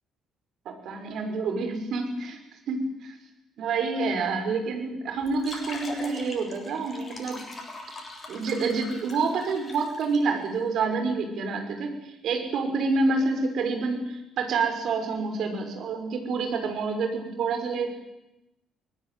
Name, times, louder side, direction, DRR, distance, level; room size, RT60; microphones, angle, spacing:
voice 1, 0.7-2.4 2.7-3.2 3.6-7.4 8.3-17.9, right 4 dB, 55° right, 5 dB, 5.5 m, -28 dB
sound 1, 5.2-10.2, left 2 dB, 30° left, 7.8 m, -41 dB
24.5 x 19.0 x 9.3 m, 0.94 s
figure-of-eight pair, 50°, 0 cm